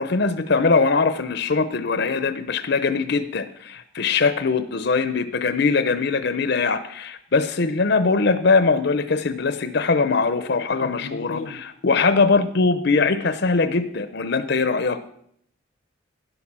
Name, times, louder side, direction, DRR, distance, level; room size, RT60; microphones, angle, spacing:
voice 1, 0.0-15.1, left 4 dB, 55° left, 11 dB, 0.7 m, -21 dB
voice 2, 10.8-11.6, left 3 dB, 85° left, 13 dB, 0.9 m, -36 dB
13.0 x 10.5 x 6.1 m, 0.68 s
head